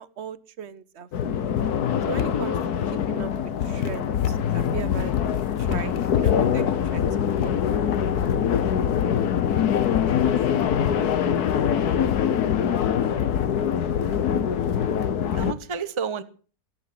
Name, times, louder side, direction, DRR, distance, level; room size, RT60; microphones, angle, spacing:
voice 1, 0.0-1.6 2.1-2.6 2.9-5.1 5.6-7.6, right 7 dB, 50° right, 17 dB, 1.0 m, -38 dB
sound 1, 1.1-15.5, left 8 dB, 70° left, 1.5 m, -23 dB
voice 2, 14.8-16.2, right 6 dB, 20° right, 12 dB, 0.8 m, -33 dB
15.0 x 11.0 x 7.7 m, 0.41 s
omnidirectional pair, 1.7 m